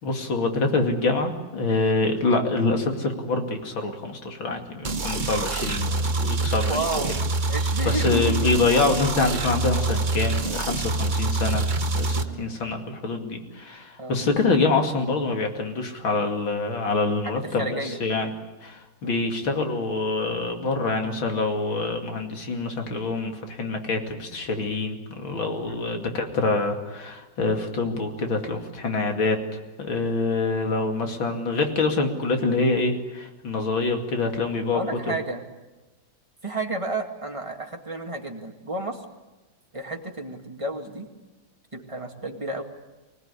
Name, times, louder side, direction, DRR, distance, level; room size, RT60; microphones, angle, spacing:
voice 1, 0.0-6.8 7.8-11.7 11.9-18.3 18.6-29.4 29.8-34.8 35.1-35.2, left 3 dB, 80° left, 4 dB, 3.2 m, -25 dB
sound 1, 4.8-12.2, right 3 dB, 30° right, 0.9 m, -26 dB
voice 2, 6.7-7.1 7.5-8.5 11.2-11.3 12.2-12.4 14.0-14.2 17.2-18.0 19.0-19.2 25.7-25.9 29.1-29.2 34.7-35.4 36.4-39.0 39.7-41.1 41.7-42.6, right 2 dB, 15° right, 3 dB, 2.1 m, -31 dB
25.0 x 18.0 x 9.8 m, 1.1 s
omnidirectional pair, 2.1 m